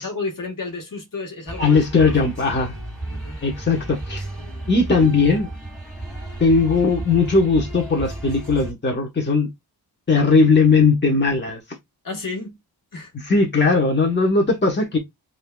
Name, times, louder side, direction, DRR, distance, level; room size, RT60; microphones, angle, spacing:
voice 1, 0.0-2.2 3.1-3.4 4.4-4.7 12.0-12.5 12.9-13.3, left 3 dB, 55° left, 1.4 m, -32 dB
sound 1, 1.5-8.7, right 1 dB, ahead, 2.3 m, -33 dB
voice 2, 1.6-2.7 3.4-4.3 4.7-5.5 6.4-9.5 10.1-11.6 13.1-15.0, left 4 dB, 30° left, 1.1 m, -18 dB
5.6 x 2.7 x 2.3 m
wide cardioid pair, 110°, 39 cm